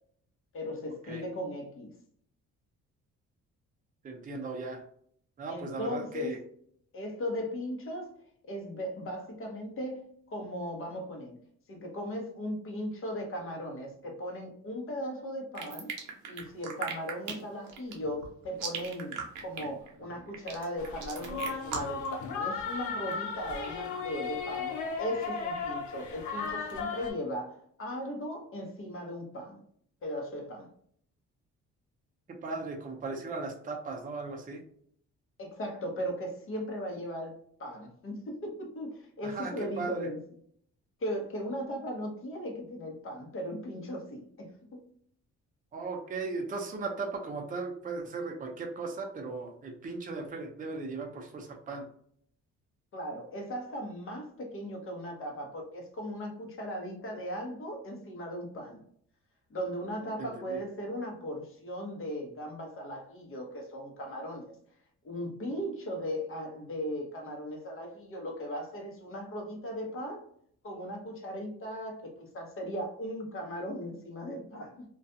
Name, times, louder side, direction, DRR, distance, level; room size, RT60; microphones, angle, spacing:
voice 1, 0.5-1.9 5.5-6.4 6.9-8.1 8.5-11.4 11.7-15.9 16.3-29.6 30.0-30.7 35.4-37.3 37.6-40.2 41.0-44.8 52.9-58.8 59.5-64.6 65.0-70.3 70.6-74.8, equal, 45° left, 1 dB, 0.9 m, -37 dB
voice 2, 4.0-4.8 5.4-6.4 32.4-34.6 39.2-39.5 39.8-40.1 45.7-51.9 60.2-60.6, right 3 dB, 25° right, 2 dB, 0.5 m, -37 dB
sound 1, 15.5-22.1, right 6 dB, 85° right, 0.7 m, -38 dB
sound 2, 20.8-27.1, left 4 dB, 75° left, 0.7 m, -36 dB
2.4 x 2.2 x 2.6 m, 0.63 s
cardioid pair, 90°, 30 cm